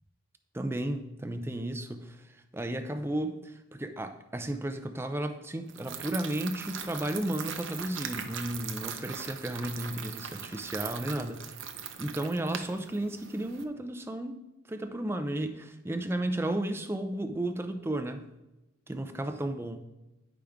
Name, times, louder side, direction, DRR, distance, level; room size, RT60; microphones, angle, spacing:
voice 1, 0.5-11.4 12.0-14.4 14.7-18.2 18.9-19.8, right 1 dB, 10° right, 7 dB, 0.4 m, -33 dB
sound 1, 5.7-13.6, right 7 dB, 65° right, 0.6 m, -40 dB
10.0 x 5.0 x 3.5 m, 0.97 s
head